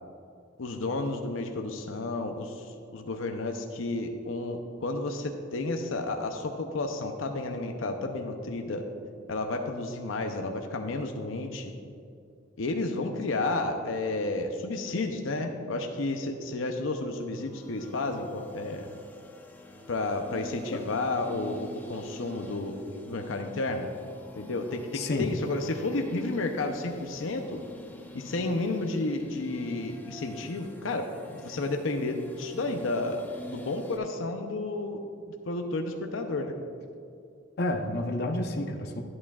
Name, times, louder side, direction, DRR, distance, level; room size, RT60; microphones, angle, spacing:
voice 1, 0.6-8.8 9.3-11.7 12.6-18.9 19.9-22.8 23.0-23.9 24.4-27.6 28.1-31.1 31.3-35.0 35.5-36.5, left 2 dB, 85° left, 4 dB, 0.6 m, -31 dB
sound 1, 17.1-34.0, equal, 10° left, 0.6 m, -47 dB
voice 2, 24.9-25.3 37.6-39.0, left 1 dB, 55° left, 3 dB, 0.7 m, -29 dB
12.5 x 8.6 x 2.4 m, 2.4 s
head